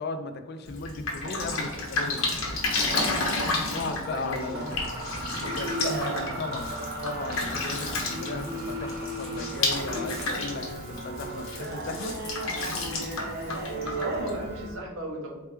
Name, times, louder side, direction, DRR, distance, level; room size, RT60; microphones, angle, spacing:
voice 1, 0.0-2.3 3.6-4.7 5.4-6.8 7.0-12.2, left 3 dB, 50° left, 8 dB, 0.4 m, -36 dB
Drip, 0.7-14.7, left 3 dB, 80° left, 1.1 m, -32 dB
Mechanisms, 1.7-2.0 2.3-12.9, right 1 dB, 15° right, 1.4 m, -41 dB
voice 2, 4.1-4.6 13.7-15.4, right 1 dB, 70° right, 0 dB, 1.0 m, -35 dB
sound 1, 4.5-14.7, right 2 dB, 50° right, 0.7 m, -36 dB
4.3 x 3.4 x 3.2 m, 1.3 s
head